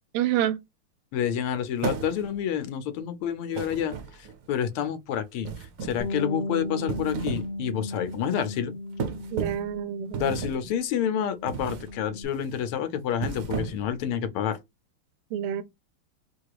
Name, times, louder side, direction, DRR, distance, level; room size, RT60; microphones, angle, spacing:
voice 1, 0.1-0.6 9.3-10.4 15.3-15.6, right 11 dB, 90° right, 1.5 m, -28 dB
voice 2, 1.1-8.7 10.1-14.6, left 9 dB, 80° left, 1.6 m, -29 dB
sound 1, 1.8-2.5 3.5-4.5 5.4-6.1 6.7-7.5 7.9-8.1 9.0-9.7 10.1-10.7 11.5-11.9 12.3-12.6 13.1-14.0, right 6 dB, 70° right, 0.8 m, -34 dB
Bass guitar, 6.0-10.7 11.0-12.2, left 2 dB, 65° left, 1.6 m, -36 dB
4.7 x 2.4 x 4.7 m
omnidirectional pair, 2.4 m